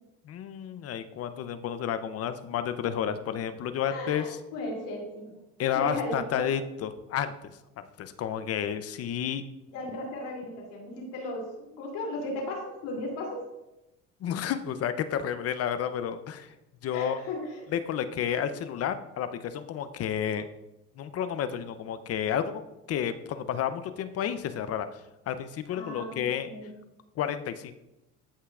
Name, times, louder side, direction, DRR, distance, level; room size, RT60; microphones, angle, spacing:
voice 1, 0.2-4.4 5.6-7.5 8.0-9.4 14.2-16.5 16.8-17.2 17.7-20.5 21.0-22.6 22.9-24.9 25.3-26.5 27.2-27.7, left 9 dB, 45° left, 11 dB, 0.7 m, -31 dB
voice 2, 3.9-5.4 5.7-6.4 9.7-13.5 16.9-17.6 25.7-26.7, left 1 dB, 75° left, -1 dB, 3.0 m, -36 dB
14.0 x 5.6 x 2.5 m, 0.95 s
supercardioid pair, 105°, 33 cm